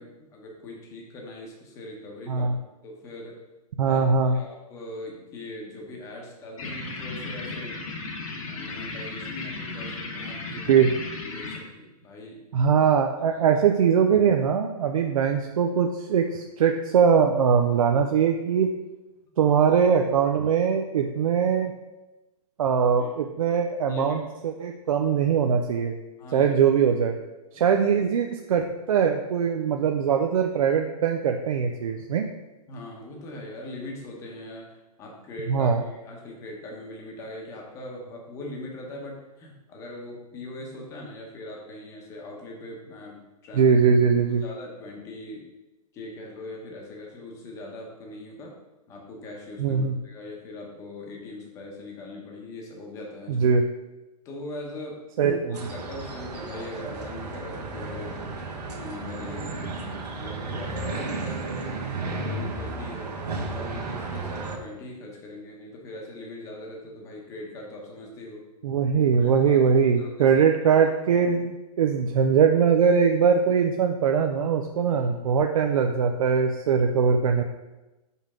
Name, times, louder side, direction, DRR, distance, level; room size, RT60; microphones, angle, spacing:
voice 1, 0.0-2.5 2.8-3.3 3.8-7.9 8.5-10.9 11.2-12.4 13.3-13.6 23.0-23.1 23.9-24.2 26.2-26.5 27.5-27.7 32.7-43.2 43.4-43.7 44.4-45.4 45.9-48.5 48.9-53.5 54.2-58.3 58.7-63.1 63.5-68.4 68.9-69.6 70.0-70.4 74.8-75.0, left 2 dB, 15° left, -1 dB, 1.0 m, -41 dB
voice 2, 3.8-4.4 10.7-10.9 12.5-18.7 19.4-21.7 22.6-26.0 26.3-27.2 27.5-32.3 35.5-35.8 43.5-44.4 49.6-50.0 53.3-53.6 55.2-55.4 68.6-77.4, right 6 dB, 60° right, 3 dB, 0.5 m, -21 dB
sound 1, 6.6-11.6, left 3 dB, 55° left, 1.3 m, -35 dB
sound 2, 55.5-64.6, right 3 dB, 90° right, 1.4 m, -33 dB
5.7 x 5.4 x 3.7 m, 1.0 s
hypercardioid pair, 165°, 20 cm